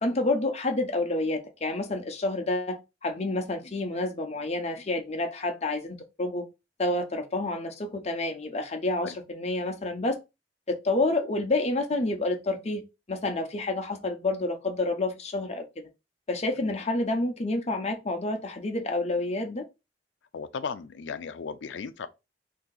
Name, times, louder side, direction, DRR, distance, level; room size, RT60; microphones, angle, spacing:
voice 1, 0.0-6.4 6.8-10.2 10.7-15.9 16.3-19.6, left 2 dB, 40° left, 0.7 m, -29 dB
voice 2, 20.3-22.1, left 5 dB, 85° left, 0.4 m, -36 dB
2.8 x 2.7 x 3.8 m
head